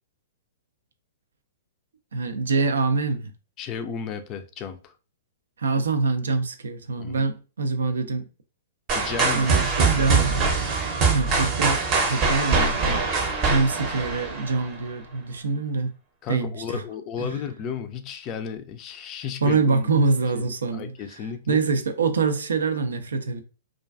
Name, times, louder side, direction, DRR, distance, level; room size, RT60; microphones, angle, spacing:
voice 1, 2.1-3.3 5.6-8.2 9.3-10.4 11.1-13.0 13.4-15.9 16.3-16.8 17.2-17.3 19.4-20.9 21.5-23.4, right 4 dB, 80° right, 0.4 m, -25 dB
voice 2, 3.6-4.9 7.0-7.3 8.9-9.9 16.2-19.9 20.4-21.6, left 7 dB, 35° left, 0.3 m, -34 dB
sound 1, 8.9-14.8, right 4 dB, 35° right, 0.7 m, -23 dB
2.4 x 2.2 x 2.3 m
hypercardioid pair, 120°, 0 cm